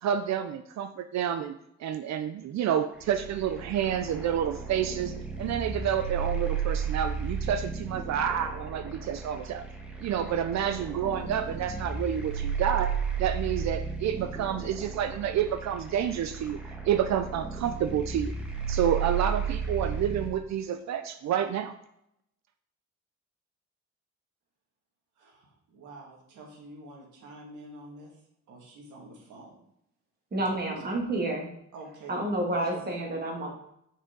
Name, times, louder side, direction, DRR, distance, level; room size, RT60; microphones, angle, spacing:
voice 1, 0.0-9.6 10.0-12.9 13.2-16.6 16.9-18.3 18.7-21.7, right 9 dB, 65° right, 9 dB, 0.5 m, -29 dB
sound 1, 3.0-20.3, right 6 dB, 5° right, 1.5 m, -34 dB
voice 2, 25.2-28.2 28.5-29.6 30.7-30.8 31.7-32.2 32.5-32.8, right 2 dB, 80° right, -1 dB, 2.2 m, -47 dB
voice 3, 30.3-31.5 32.1-33.5, right 1 dB, 30° right, -1 dB, 2.1 m, -29 dB
6.2 x 5.5 x 3.9 m, 0.76 s
cardioid pair, 90°, 30 cm